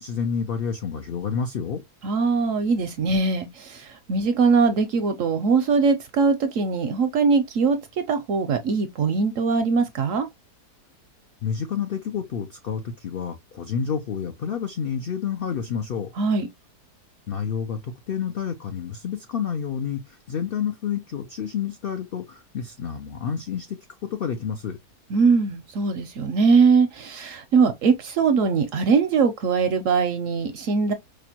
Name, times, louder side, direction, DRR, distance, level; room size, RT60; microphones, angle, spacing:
voice 1, 0.0-1.8 11.4-16.1 17.3-24.8, left 7 dB, 80° left, 0.5 m, -29 dB
voice 2, 2.0-10.3 16.2-16.5 25.1-30.9, right 5 dB, 70° right, 0.8 m, -21 dB
4.9 x 2.2 x 2.8 m
omnidirectional pair, 1.7 m